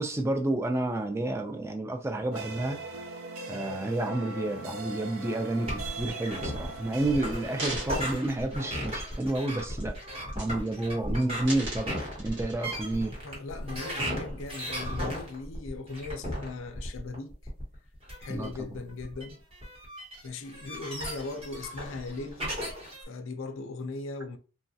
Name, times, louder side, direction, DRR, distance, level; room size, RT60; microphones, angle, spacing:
voice 1, 0.0-2.8 3.5-10.0 10.3-13.2 18.3-18.7, right 2 dB, 10° right, 0.3 m, -30 dB
sound 1, 2.3-8.0, right 2 dB, 70° right, 0.6 m, -40 dB
sound 2, 5.7-23.0, equal, 25° right, 1.1 m, -36 dB
sound 3, 6.7-6.8 7.3-9.4 9.8-10.0 10.3-10.9 11.2-12.9 13.5-13.6, right 1 dB, 55° right, 1.3 m, -40 dB
voice 2, 13.2-17.3 18.2-19.4 20.2-22.6 23.1-24.4, left 3 dB, 60° left, 0.4 m, -38 dB
3.1 x 2.3 x 2.6 m
head